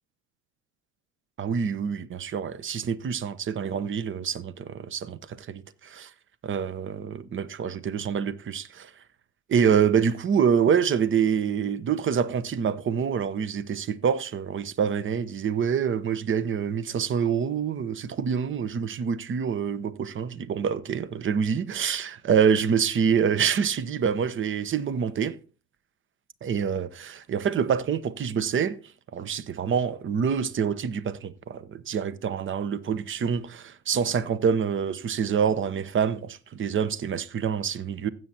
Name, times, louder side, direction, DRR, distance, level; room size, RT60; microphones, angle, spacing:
voice 1, 1.4-6.1 6.4-8.9 9.5-25.4 26.4-28.8 29.1-38.1, right 7 dB, 30° right, 0.9 m, -26 dB
16.0 x 7.6 x 2.9 m
hypercardioid pair, 75°, 41 cm